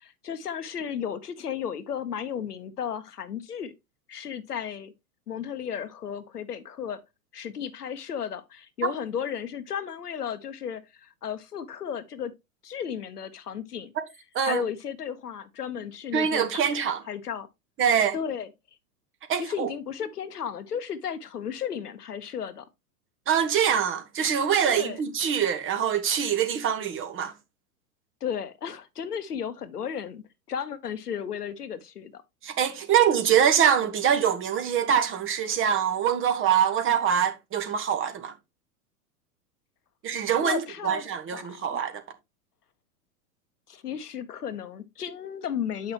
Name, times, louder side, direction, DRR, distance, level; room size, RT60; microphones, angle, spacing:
voice 1, 0.0-3.7 4.1-4.9 5.3-7.0 7.3-12.3 12.6-13.9 14.4-17.5 18.1-18.5 19.4-22.7 24.7-25.0 28.2-32.2 40.4-42.0 43.7-45.9, left 8 dB, 80° left, 1.1 m, -34 dB
voice 2, 16.1-17.0 17.8-18.1 19.3-19.7 23.3-27.3 32.4-38.3 40.0-41.9, right 8 dB, 25° right, 1.5 m, -24 dB
8.4 x 5.9 x 3.0 m
hypercardioid pair, 100°, 45 cm